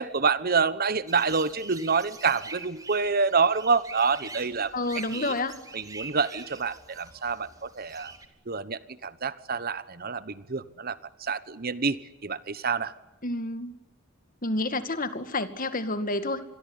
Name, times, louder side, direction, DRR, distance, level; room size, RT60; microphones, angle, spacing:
voice 1, 0.0-4.7 5.1-5.3 5.7-8.1 8.5-12.9, right 5 dB, 45° right, 16 dB, 1.1 m, -27 dB
sound 1, 1.1-8.3, right 3 dB, 15° right, 2.6 m, -45 dB
voice 2, 4.7-5.5 13.2-13.8 14.4-16.4, left 2 dB, 40° left, 11 dB, 2.1 m, -29 dB
27.5 x 22.0 x 9.8 m, 1.0 s
head